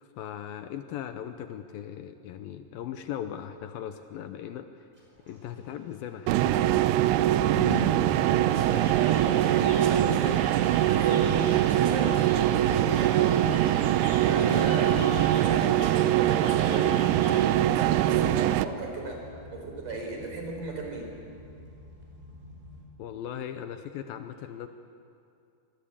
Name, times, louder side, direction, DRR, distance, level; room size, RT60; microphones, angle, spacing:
voice 1, 0.0-4.9 5.3-6.8 23.0-24.7, left 10 dB, 75° left, 8 dB, 2.4 m, -38 dB
sound 1, 4.9-22.8, left 2 dB, 10° right, 5.3 m, -46 dB
sound 2, 6.3-18.7, right 12 dB, 85° right, 2.7 m, -23 dB
voice 2, 7.9-10.5 10.8-13.5 14.2-17.1 17.6-21.1, right 3 dB, 55° right, 2 dB, 5.4 m, -36 dB
sound 3, 8.5-17.6, left 2 dB, 45° left, 6.2 m, -45 dB
26.5 x 19.0 x 8.6 m, 2.5 s
omnidirectional pair, 4.6 m